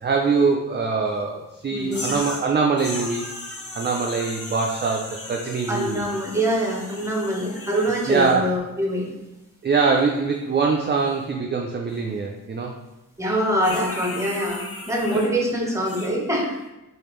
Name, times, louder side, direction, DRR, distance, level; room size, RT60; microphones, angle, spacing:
voice 1, 0.0-3.3 3.7-6.0 7.5-7.6 8.1-8.4 9.6-12.7, right 4 dB, 30° right, 1 dB, 0.4 m, -23 dB
voice 2, 1.7-2.1 5.7-9.2 13.2-16.6, equal, 10° right, -1 dB, 0.8 m, -24 dB
sound 1, 1.9-2.5 2.8-8.4 13.6-15.3 15.8-16.1, left 2 dB, 40° left, 0.8 m, -36 dB
3.2 x 2.5 x 3.1 m, 0.97 s
cardioid pair, 50°, 36 cm